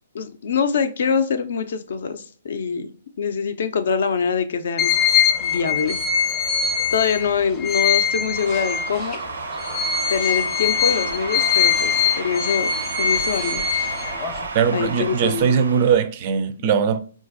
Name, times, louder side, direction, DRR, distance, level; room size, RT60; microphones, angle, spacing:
voice 1, 0.1-2.9 3.2-4.9 5.4-6.0 6.9-9.2 10.1-12.7 13.0-13.7 14.7-15.6, left 6 dB, 70° left, 0.5 m, -24 dB
sound 1, 4.8-9.2 9.6-14.5, left 7 dB, 25° left, 0.7 m, -22 dB
sound 2, 8.3-15.9, right 3 dB, 85° right, 0.6 m, -32 dB
voice 2, 14.5-17.0, right 7 dB, 40° right, 0.4 m, -20 dB
3.9 x 2.5 x 2.4 m
hypercardioid pair, 140°, 0 cm